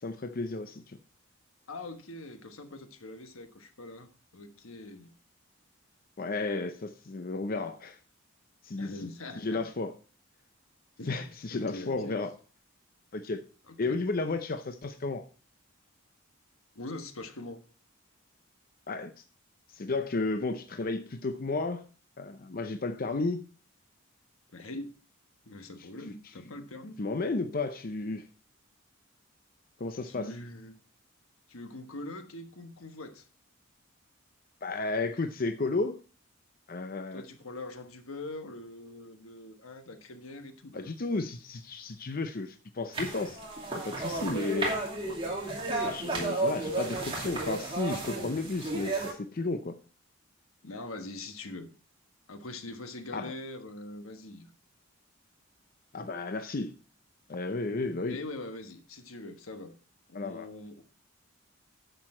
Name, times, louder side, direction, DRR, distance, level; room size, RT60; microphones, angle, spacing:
voice 1, 0.0-1.0 6.2-8.0 8.6-8.9 9.4-9.9 11.1-12.3 13.1-13.4 13.8-15.2 18.9-19.1 19.7-21.8 22.2-23.4 27.0-28.2 29.8-30.3 34.6-36.0 36.7-37.2 40.7-43.4 43.7-44.8 45.8-49.8 53.1-53.3 55.9-56.7 57.3-58.2 60.1-60.5, left 3 dB, 45° left, 0.6 m, -33 dB
voice 2, 1.7-5.2 8.8-9.7 11.0-12.2 13.7-14.0 16.7-17.6 24.5-24.9 25.4-27.0 30.0-30.8 31.5-33.3 37.1-40.9 46.8-47.0 50.6-51.7 52.3-54.5 58.1-59.8 60.1-60.8, left 2 dB, 85° left, 1.3 m, -43 dB
sound 1, 42.9-49.1, right 2 dB, 25° right, 2.4 m, -33 dB
10.0 x 6.8 x 4.3 m
head